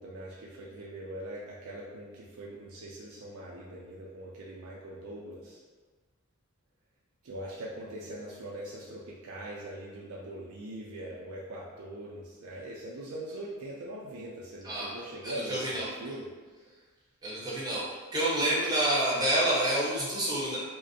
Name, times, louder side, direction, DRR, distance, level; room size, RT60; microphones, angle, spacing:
voice 1, 0.0-5.6 7.2-16.3 18.4-18.6, right 1 dB, 75° right, -5 dB, 0.4 m, -42 dB
voice 2, 15.2-15.9 17.2-17.9 18.1-20.6, right 1 dB, 20° right, -7 dB, 0.6 m, -28 dB
2.4 x 2.1 x 2.6 m, 1.4 s
head